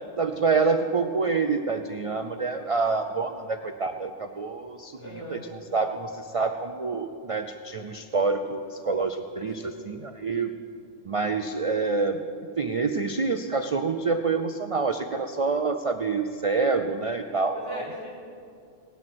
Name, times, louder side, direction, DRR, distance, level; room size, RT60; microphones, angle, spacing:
voice 1, 0.2-10.5 11.1-12.2 12.6-17.8, right 4 dB, 40° right, 7 dB, 0.5 m, -27 dB
voice 2, 5.0-5.5 17.6-18.1, left 1 dB, 55° left, -5 dB, 5.2 m, -39 dB
18.0 x 11.5 x 6.2 m, 2.5 s
omnidirectional pair, 1.2 m